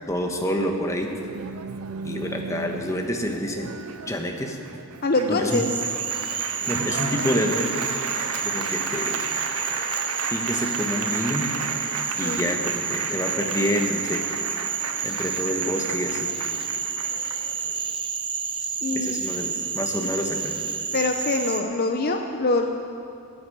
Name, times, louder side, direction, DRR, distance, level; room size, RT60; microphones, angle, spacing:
voice 1, 0.1-1.1 2.0-3.7 4.1-4.6 5.3-5.6 6.7-7.8 8.4-9.2 10.3-11.5 12.2-14.2 15.0-16.3 18.9-20.6, equal, 15° left, 2 dB, 1.2 m, -27 dB
Applause, 1.0-18.0, right 7 dB, 90° right, 0.5 m, -35 dB
voice 2, 5.0-5.7 12.2-12.5 18.8-19.2 20.9-22.7, left 2 dB, 45° left, 4 dB, 0.6 m, -24 dB
Cricket / Frog, 5.5-21.6, right 5 dB, 25° right, 0.8 m, -30 dB
sound 1, 6.7-13.8, right 2 dB, 70° right, 2.2 m, -37 dB
16.0 x 6.8 x 9.2 m, 2.5 s
head